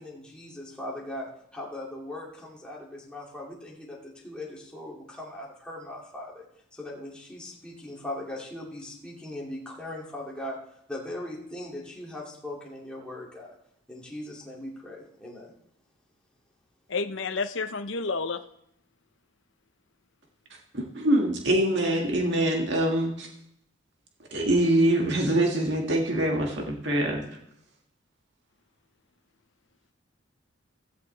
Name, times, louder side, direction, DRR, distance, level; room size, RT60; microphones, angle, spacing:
voice 1, 0.0-6.4 6.7-13.6 13.9-15.5, left 1 dB, 5° left, -4 dB, 2.6 m, -39 dB
voice 2, 16.9-18.4, left 4 dB, 65° left, 10 dB, 0.8 m, -30 dB
voice 3, 20.7-23.3 24.3-27.3, right 1 dB, 60° right, 0 dB, 2.0 m, -24 dB
16.0 x 14.5 x 3.4 m, 0.72 s
head